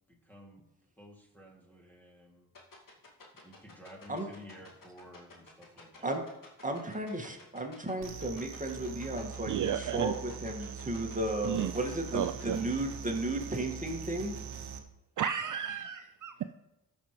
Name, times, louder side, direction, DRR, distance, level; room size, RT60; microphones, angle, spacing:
voice 1, 0.1-0.7 1.0-2.5 3.4-6.1, left 1 dB, 5° left, 0 dB, 2.6 m, -53 dB
sound 1, 2.5-12.8, left 4 dB, 50° left, 2.3 m, -53 dB
voice 2, 6.6-14.4, right 1 dB, 20° right, 3 dB, 1.9 m, -34 dB
sound 2, 8.0-14.8, right 7 dB, 70° right, 1.2 m, -42 dB
voice 3, 9.5-10.1 11.4-11.7 12.1-12.6 15.2-16.3, right 9 dB, 50° right, 10 dB, 0.5 m, -32 dB
13.0 x 6.0 x 3.2 m, 0.91 s
supercardioid pair, 45°, 41 cm